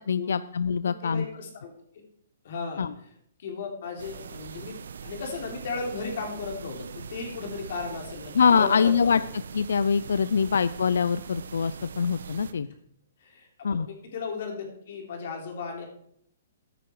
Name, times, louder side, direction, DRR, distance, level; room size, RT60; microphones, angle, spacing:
voice 1, 0.1-1.3 2.8-2.9 8.4-9.2 9.5-12.7 13.6-13.9, left 6 dB, 90° left, 15 dB, 0.5 m, -24 dB
voice 2, 0.8-2.0 2.4-3.1 3.4-9.2 10.4-10.5 13.2-15.9, left 4 dB, 50° left, 2 dB, 3.6 m, -36 dB
sound 1, 4.0-12.5, right 6 dB, 75° right, 1.0 m, -42 dB
14.5 x 10.0 x 4.7 m, 0.71 s
hypercardioid pair, 170°, 0 cm